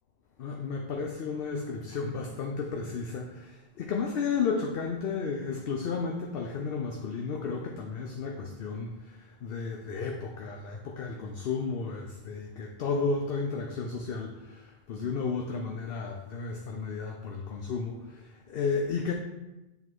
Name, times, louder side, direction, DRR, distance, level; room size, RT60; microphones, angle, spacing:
voice 1, 0.4-19.1, left 5 dB, 60° left, 2 dB, 0.7 m, -33 dB
7.8 x 3.7 x 4.7 m, 1.0 s
omnidirectional pair, 1.3 m